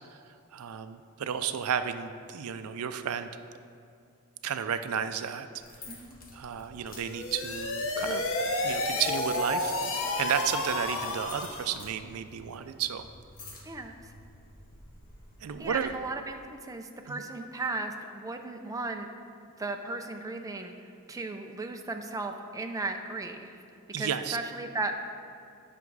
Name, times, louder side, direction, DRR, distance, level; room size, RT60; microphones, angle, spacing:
voice 1, 0.5-3.3 4.4-5.5 6.3-8.2 8.6-9.7 10.2-13.1 15.4-16.0 17.1-17.2 23.9-24.4, right 8 dB, 70° right, 10 dB, 0.4 m, -32 dB
sound 1, 5.6-15.9, left 2 dB, 40° left, 1.3 m, -51 dB
voice 2, 5.9-6.2 13.6-13.9 15.6-19.1 19.6-20.7 21.1-23.6 24.0-25.0, right 3 dB, 15° right, 4 dB, 0.4 m, -36 dB
sound 2, 7.0-11.8, left 2 dB, 65° left, 0.8 m, -31 dB
9.2 x 5.9 x 4.7 m, 2.4 s
head